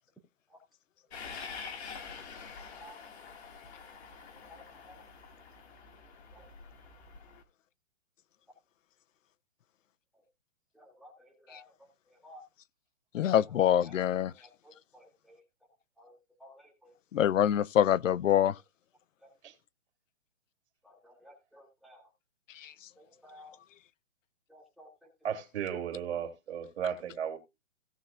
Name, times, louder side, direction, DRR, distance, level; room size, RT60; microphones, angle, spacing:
Train, 1.1-7.4, left 5 dB, 55° left, 2.1 m, -46 dB
voice 1, 4.3-5.0 6.3-6.4 10.7-11.7 12.1-12.4 13.6-15.4 16.0-16.9 19.2-19.3 20.8-22.0 23.0-23.6 24.5-24.9, equal, ahead, 2.4 m, -55 dB
voice 2, 13.1-14.3 17.1-18.5 22.6-22.7, left 10 dB, 70° left, 0.6 m, -25 dB
voice 3, 25.2-27.4, right 8 dB, 55° right, 3.0 m, -35 dB
17.0 x 6.1 x 2.5 m
hypercardioid pair, 160°, 39 cm